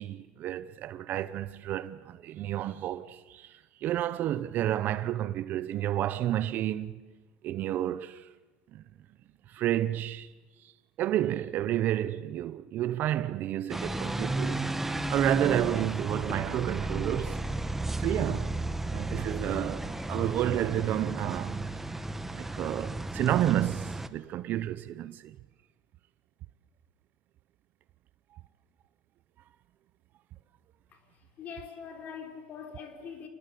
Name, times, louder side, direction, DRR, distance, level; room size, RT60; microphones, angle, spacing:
voice 1, 0.0-7.0 7.4-8.3 8.7-8.8 9.5-10.3 10.6-10.7 11.0-17.4 18.0-18.5 18.9-21.6 22.3-25.4, right 12 dB, 50° right, 0.8 m, -30 dB
sound 1, 13.7-24.1, right 2 dB, 5° right, 1.3 m, -33 dB
voice 2, 31.4-33.3, left 6 dB, 40° left, 3.7 m, -43 dB
27.5 x 19.5 x 8.5 m
supercardioid pair, 120°, 4 cm